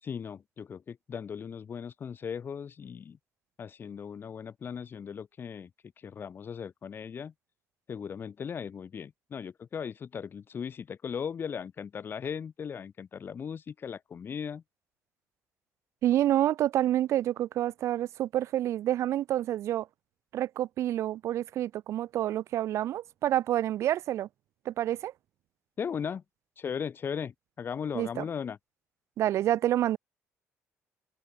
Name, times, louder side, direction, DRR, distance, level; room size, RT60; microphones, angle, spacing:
voice 1, 0.0-3.2 3.6-5.7 6.0-7.3 7.9-14.6 25.8-26.2 26.6-28.6, left 7 dB, 45° left, 2.4 m, -37 dB
voice 2, 16.0-19.9 20.3-24.3 24.6-25.1 27.9-28.2 29.2-30.0, right 12 dB, 70° right, 0.9 m, -28 dB
open air
cardioid pair, 95°, 5 cm